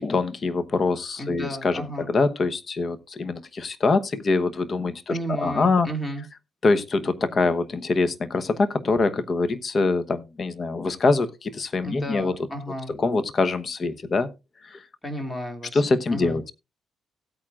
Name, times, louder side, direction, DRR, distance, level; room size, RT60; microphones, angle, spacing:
voice 1, 0.0-5.9 6.6-12.5 12.9-14.3 14.6-14.8 15.7-16.5, left 3 dB, 40° left, 1.0 m, -24 dB
voice 2, 1.2-2.1 5.1-6.2 11.8-12.9 15.0-15.8 16.1-16.4, right 1 dB, 15° left, 2.5 m, -33 dB
16.5 x 8.7 x 2.4 m
cardioid pair, 90°, 0 cm